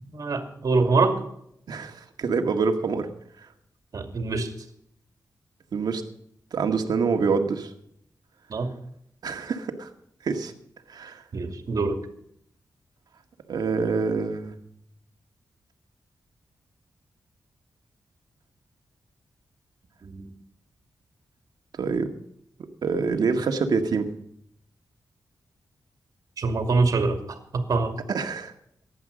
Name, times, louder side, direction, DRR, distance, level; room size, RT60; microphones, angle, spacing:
voice 1, 0.1-1.2 3.9-4.5 8.5-8.7 11.3-12.0 20.0-20.3 26.4-27.9, right 3 dB, 60° right, 5 dB, 2.5 m, -24 dB
voice 2, 1.7-3.1 5.7-6.0 6.5-7.7 9.2-9.9 10.2-10.5 10.9-11.2 13.5-14.6 21.8-22.1 22.8-24.1 28.1-28.5, right 5 dB, 75° right, 5 dB, 1.8 m, -26 dB
15.5 x 11.0 x 5.2 m, 0.70 s
wide cardioid pair, 105°, 7 cm